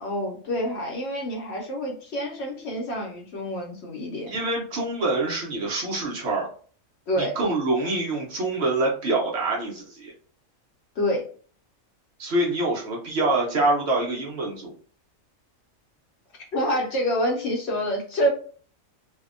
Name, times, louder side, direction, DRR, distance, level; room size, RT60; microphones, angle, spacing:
voice 1, 0.0-4.3 7.1-7.4 11.0-11.3 16.5-18.3, equal, 65° left, 0 dB, 0.8 m, -27 dB
voice 2, 4.3-6.5 7.2-10.1 12.2-14.7, right 2 dB, 60° right, -2 dB, 0.9 m, -25 dB
2.7 x 2.0 x 2.4 m, 0.43 s
omnidirectional pair, 1.4 m